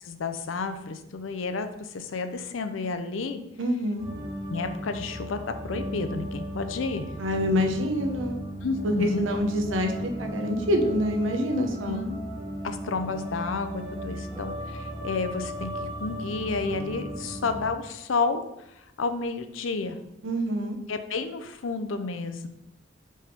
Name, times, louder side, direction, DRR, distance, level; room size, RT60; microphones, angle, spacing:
voice 1, 0.0-3.4 4.5-7.1 8.6-9.3 11.5-12.2 12.6-18.4 19.0-20.0 20.9-22.5, left 4 dB, 90° left, 9 dB, 0.6 m, -31 dB
voice 2, 3.6-4.1 7.2-8.4 8.8-12.0 20.2-20.8, equal, 80° right, 4 dB, 0.8 m, -26 dB
sound 1, 4.0-17.7, equal, 20° right, 1.1 m, -36 dB
5.4 x 3.5 x 5.1 m, 0.84 s
head